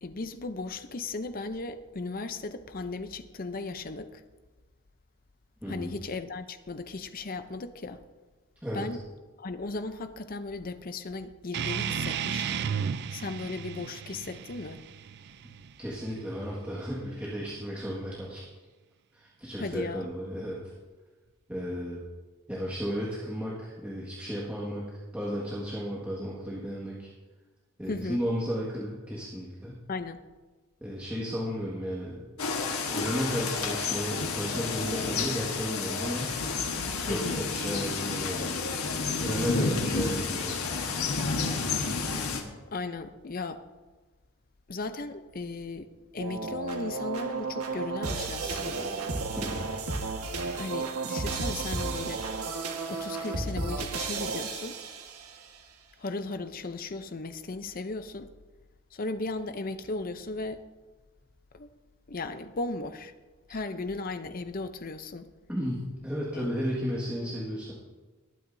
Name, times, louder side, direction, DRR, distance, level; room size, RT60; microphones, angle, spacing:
voice 1, 0.0-4.2 5.7-8.0 8.7-9.0 9.4-12.6 13.1-14.8 19.6-20.1 27.9-28.2 29.9-30.2 37.1-37.4 42.7-43.6 44.7-48.9 50.5-52.2 52.9-54.8 56.0-58.3 58.9-60.6 61.5-61.7 62.1-63.1 63.5-65.3 66.3-66.5, left 3 dB, 40° left, 0.6 m, -36 dB
voice 2, 5.6-5.9 8.6-8.8 15.8-18.4 19.1-20.6 21.5-22.0 22.5-24.8 25.1-27.1 27.8-29.7 30.8-36.3 37.1-38.6 39.1-40.8 49.4-49.7 65.5-67.7, equal, 5° right, 1.7 m, -34 dB
sound 1, 11.5-16.6, right 7 dB, 50° right, 0.3 m, -34 dB
sound 2, 32.4-42.4, left 4 dB, 80° left, 1.4 m, -30 dB
sound 3, 46.2-55.4, right 4 dB, 90° right, 1.5 m, -33 dB
20.0 x 9.2 x 2.7 m
head